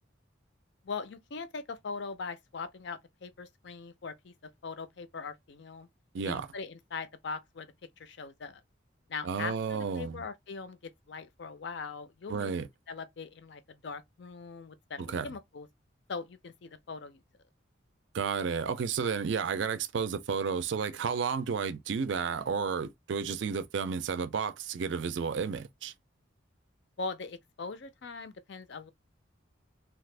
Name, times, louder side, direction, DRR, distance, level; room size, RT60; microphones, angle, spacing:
voice 1, 0.8-4.3 4.6-5.9 6.2-8.6 9.1-12.5 12.9-15.7 16.1-17.2 27.0-28.9, left 4 dB, 60° left, 0.5 m, -41 dB
voice 2, 6.1-6.5 9.2-10.2 12.3-12.7 15.0-15.3 18.1-25.9, right 6 dB, 65° right, 0.4 m, -32 dB
2.8 x 2.4 x 3.2 m
head